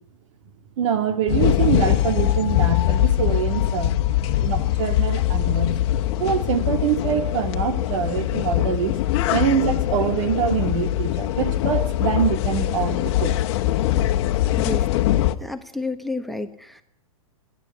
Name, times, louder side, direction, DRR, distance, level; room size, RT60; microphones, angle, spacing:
voice 1, 0.8-5.8 6.2-9.0 9.3-13.4, right 7 dB, 60° right, 2.4 m, -24 dB
sound 1, 1.3-15.4, left 13 dB, 50° left, 1.3 m, -22 dB
voice 2, 14.5-14.9 15.4-16.8, left 2 dB, ahead, 1.2 m, -30 dB
29.0 x 11.5 x 9.5 m
hypercardioid pair, 125°, 18 cm